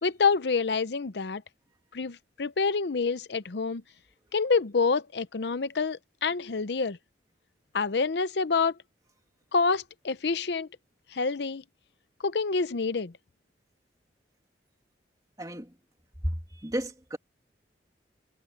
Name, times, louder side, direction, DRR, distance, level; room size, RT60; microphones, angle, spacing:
voice 1, 0.0-1.4 1.9-3.8 4.3-7.0 7.7-8.7 9.5-10.7 11.1-11.6 12.2-13.1, left 4 dB, 70° left, 0.7 m, -27 dB
voice 2, 15.4-15.7 16.2-16.3 16.6-17.2, equal, 20° right, 2.7 m, -32 dB
head